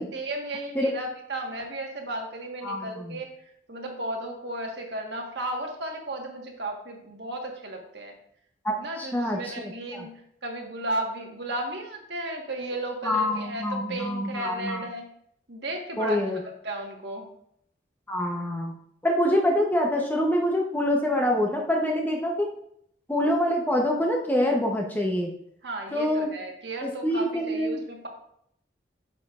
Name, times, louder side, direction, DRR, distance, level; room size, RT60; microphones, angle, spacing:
voice 1, 0.0-8.2 8.8-10.1 10.4-15.1 15.5-16.2 16.6-17.3 25.6-28.1, right 1 dB, 65° right, 1 dB, 1.4 m, -34 dB
voice 2, 2.6-3.2 8.6-10.1 13.0-14.8 16.0-16.4 18.1-18.7 19.0-22.5 23.1-25.3 25.9-26.3 26.8-27.8, left 1 dB, 10° left, 0 dB, 0.8 m, -26 dB
8.7 x 6.8 x 2.5 m, 0.70 s
head